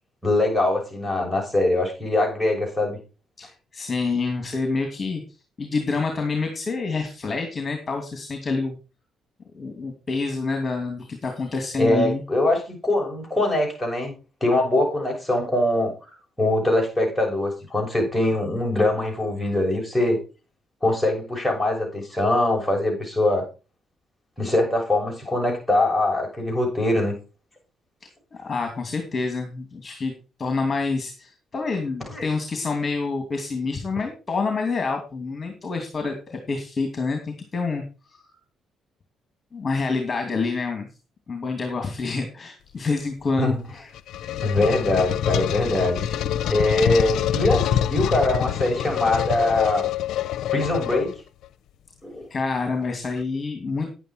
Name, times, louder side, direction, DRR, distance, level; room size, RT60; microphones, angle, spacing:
voice 1, 0.2-3.0 11.8-14.1 14.4-15.9 16.4-20.2 20.8-23.5 24.4-27.2 32.1-32.3 43.4-43.6 44.4-46.0 46.5-49.9 50.5-51.1 52.0-52.2, left 1 dB, 5° left, -1 dB, 6.6 m, -22 dB
voice 2, 3.4-5.2 5.6-8.8 9.5-12.2 28.4-30.1 30.4-37.8 38.3-38.4 39.5-40.9 41.3-43.9 52.3-53.9, left 4 dB, 35° left, 5 dB, 2.6 m, -27 dB
sound 1, 43.7-51.5, left 11 dB, 80° left, 0.7 m, -25 dB
10.5 x 9.1 x 4.6 m, 0.32 s
cardioid pair, 90°, 0 cm